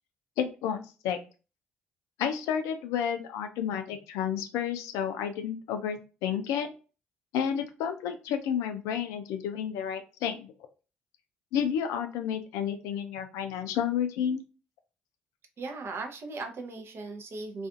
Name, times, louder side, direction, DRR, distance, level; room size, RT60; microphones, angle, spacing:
voice 1, 0.4-1.2 2.2-6.7 7.3-10.5 11.5-14.4, left 8 dB, 70° left, 7 dB, 0.4 m, -31 dB
voice 2, 15.6-17.7, right 3 dB, 50° right, 4 dB, 0.6 m, -38 dB
2.4 x 2.4 x 2.4 m, 0.34 s
hypercardioid pair, 50°, 5 cm